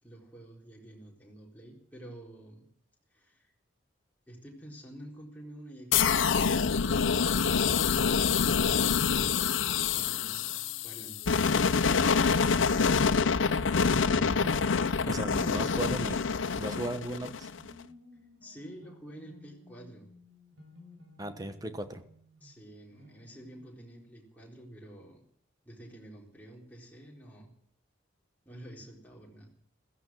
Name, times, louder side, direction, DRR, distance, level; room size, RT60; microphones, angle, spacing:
voice 1, 0.0-2.7 3.1-3.5 4.3-10.5 10.8-12.0 18.4-20.1 22.4-25.2 25.6-27.6 28.5-29.5, right 1 dB, 10° left, -3 dB, 4.0 m, -49 dB
sound 1, 5.9-17.7, left 6 dB, 75° left, 0.7 m, -26 dB
voice 2, 13.9-14.6 15.1-16.2 16.6-17.5 21.2-22.0, right 1 dB, 20° right, 9 dB, 1.1 m, -36 dB
sound 2, 17.5-23.6, left 1 dB, 80° right, 5.5 m, -57 dB
15.5 x 15.0 x 6.3 m, 0.63 s
head